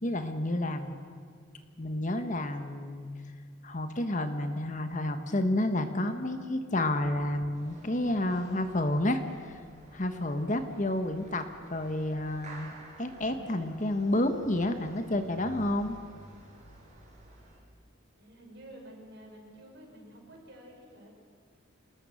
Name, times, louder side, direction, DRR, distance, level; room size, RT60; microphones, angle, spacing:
voice 1, 0.0-1.0 1.8-3.1 3.6-9.6 9.9-16.0, left 1 dB, 40° left, 8 dB, 1.2 m, -30 dB
sound 1, 7.5-17.6, right 1 dB, 35° right, 5.6 m, -52 dB
voice 2, 18.1-21.1, right 1 dB, 55° right, 0 dB, 5.7 m, -50 dB
27.0 x 20.0 x 6.4 m, 2.1 s
head